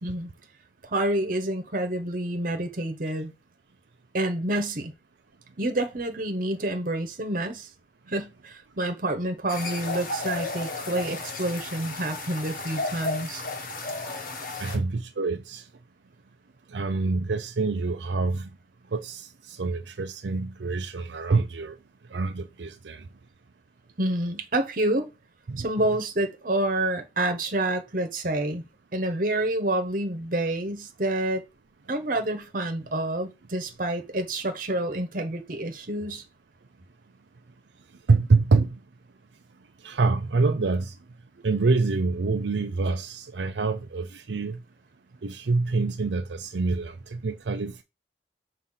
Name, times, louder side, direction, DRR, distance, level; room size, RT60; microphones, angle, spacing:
voice 1, 0.8-3.3 4.1-4.9 5.6-7.7 8.1-13.4 24.0-25.1 25.6-28.6 28.9-31.4 31.9-36.2, right 1 dB, 50° right, 1.2 m, -28 dB
sound 1, 9.5-14.8, left 2 dB, 50° left, 1.3 m, -33 dB
voice 2, 14.6-15.6 16.7-18.5 18.9-21.8 22.1-23.0 25.5-25.6 38.1-38.8 39.8-40.9 41.4-44.6 45.2-47.8, right 3 dB, 85° right, 0.6 m, -26 dB
6.4 x 2.8 x 5.6 m
head